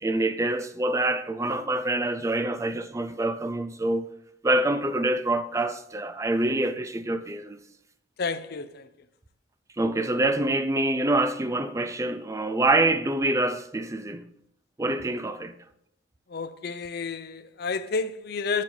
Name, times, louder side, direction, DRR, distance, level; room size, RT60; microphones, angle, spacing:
voice 1, 0.0-4.1 4.4-7.6 9.8-14.3 14.8-15.5, right 2 dB, 15° right, 0.4 m, -26 dB
voice 2, 8.2-8.9 16.3-18.6, left 4 dB, 55° left, 0.5 m, -30 dB
8.4 x 7.4 x 4.0 m
head